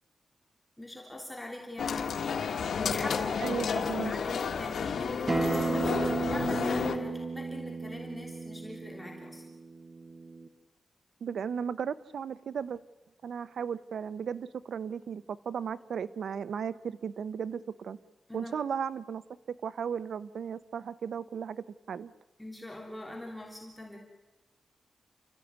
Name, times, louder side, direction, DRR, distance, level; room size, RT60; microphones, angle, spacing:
voice 1, 0.8-2.1 2.8-3.8 4.0-9.5 18.3-18.5 22.4-24.0, left 1 dB, 10° left, -1 dB, 3.4 m, -42 dB
sound 1, 1.8-7.0, left 6 dB, 85° left, 1.8 m, -31 dB
voice 2, 3.4-4.1 11.2-12.8 13.2-18.0 18.3-19.2 19.6-22.1, right 7 dB, 80° right, 15 dB, 0.8 m, -35 dB
Acoustic guitar, 5.3-10.5, right 3 dB, 25° right, 1.7 m, -34 dB
29.5 x 14.0 x 9.5 m, 1.1 s
wide cardioid pair, 100°, 0 cm